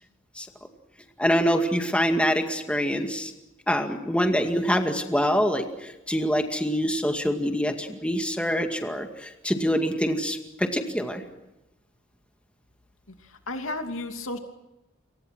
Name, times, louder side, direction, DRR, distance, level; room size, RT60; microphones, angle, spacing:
voice 1, 1.2-3.3 3.7-11.2, equal, 5° left, 4 dB, 2.1 m, -25 dB
voice 2, 13.2-14.4, left 2 dB, 85° left, 5 dB, 2.8 m, -33 dB
29.0 x 24.5 x 6.2 m, 0.94 s
head